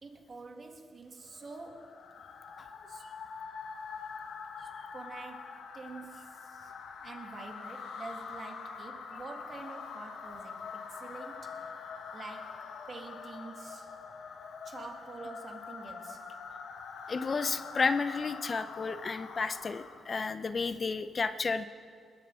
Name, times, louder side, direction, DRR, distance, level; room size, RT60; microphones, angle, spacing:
voice 1, 0.0-2.2 2.9-3.1 4.6-6.7 7.0-13.9 14.6-16.3, right 3 dB, 45° right, 1.9 m, -47 dB
sound 1, 1.3-20.2, left 5 dB, 75° left, 1.4 m, -45 dB
voice 2, 17.1-21.6, left 4 dB, 45° left, 0.7 m, -32 dB
20.0 x 8.3 x 6.9 m
cardioid pair, 70°, 0 cm